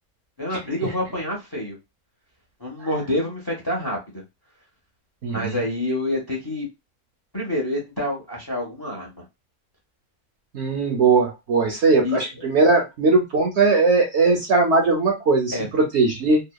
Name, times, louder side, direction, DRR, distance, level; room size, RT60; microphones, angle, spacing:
voice 1, 0.4-1.8 2.6-4.2 5.3-6.7 7.3-9.2 12.0-12.2 12.5-12.6 15.5-15.7, left 1 dB, 30° left, -1 dB, 0.4 m, -27 dB
voice 2, 5.2-5.6 10.5-16.4, right 3 dB, 65° right, 2 dB, 0.7 m, -19 dB
2.8 x 2.0 x 2.2 m, 0.23 s
omnidirectional pair, 1.6 m